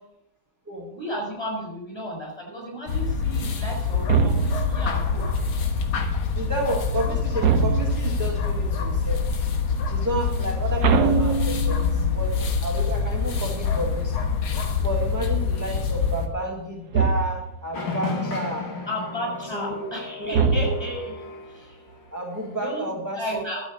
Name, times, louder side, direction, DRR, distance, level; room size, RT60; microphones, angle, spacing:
voice 1, 0.9-5.4 5.9-6.0 18.9-21.8 22.6-23.6, equal, 10° left, -2 dB, 6.4 m, -33 dB
sound 1, 2.9-16.3, left 5 dB, 90° left, 2.1 m, -25 dB
sound 2, 4.1-4.8 7.4-8.2 10.8-12.0 16.9-17.6 20.3-21.1, right 6 dB, 60° right, 1.2 m, -22 dB
voice 2, 6.3-9.2 9.9-14.1 14.8-18.7 19.5-19.9 20.2-20.7 22.1-23.4, right 1 dB, 10° right, -2 dB, 1.7 m, -31 dB
sound 3, 17.7-22.0 22.5-22.8, left 3 dB, 65° left, 2.8 m, -34 dB
12.5 x 8.0 x 7.0 m, 0.83 s
omnidirectional pair, 2.2 m